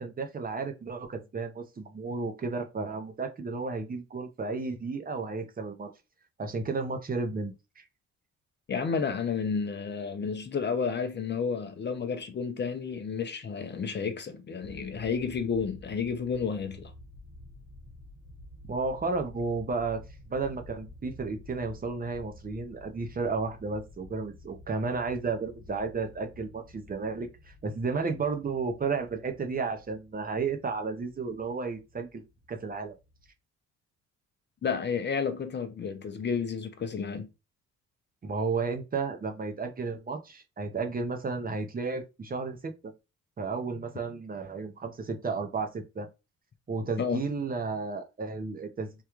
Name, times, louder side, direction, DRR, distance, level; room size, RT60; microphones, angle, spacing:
voice 1, 0.0-5.9 6.4-7.8 18.6-20.0 20.3-32.2 32.5-32.9 38.2-42.9 43.4-46.1 46.7-49.0, right 4 dB, 30° right, 0.6 m, -33 dB
voice 2, 8.7-16.9 34.6-37.3 47.0-47.2, left 6 dB, 35° left, 0.6 m, -31 dB
sound 1, 14.6-33.3, left 1 dB, 15° right, 1.0 m, -51 dB
3.6 x 2.3 x 3.0 m
cardioid pair, 90°, 30 cm